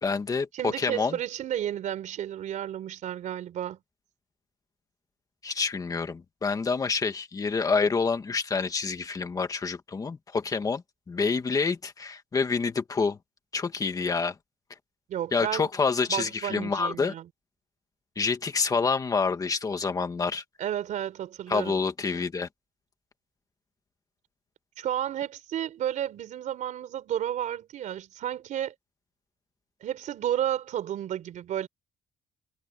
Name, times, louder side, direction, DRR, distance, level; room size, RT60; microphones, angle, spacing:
voice 1, 0.0-1.2 5.4-13.2 13.5-14.3 15.3-17.1 18.1-20.4 21.5-22.5, left 4 dB, 25° left, 1.8 m, -27 dB
voice 2, 0.5-3.8 15.1-15.7 16.1-17.3 20.6-21.7 24.8-28.7 29.8-31.7, right 11 dB, 75° right, 4.0 m, -32 dB
cardioid pair, 165°, 13 cm